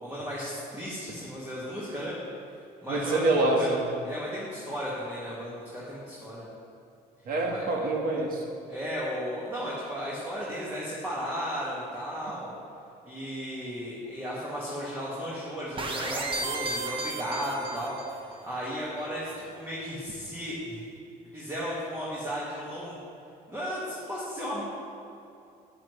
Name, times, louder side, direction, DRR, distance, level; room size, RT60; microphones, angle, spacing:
voice 1, 0.0-2.1 2.8-3.7 4.0-6.4 7.5-7.6 8.7-12.5 13.0-17.9 18.3-20.9 21.3-23.0 23.5-24.6, equal, 15° right, -7 dB, 1.9 m, -35 dB
voice 2, 2.9-3.8 7.3-8.5, right 2 dB, 60° right, 1 dB, 1.6 m, -26 dB
sound 1, 15.8-18.2, right 2 dB, 30° right, 1.0 m, -33 dB
9.9 x 9.4 x 3.3 m, 2.6 s
cardioid pair, 110°, 17 cm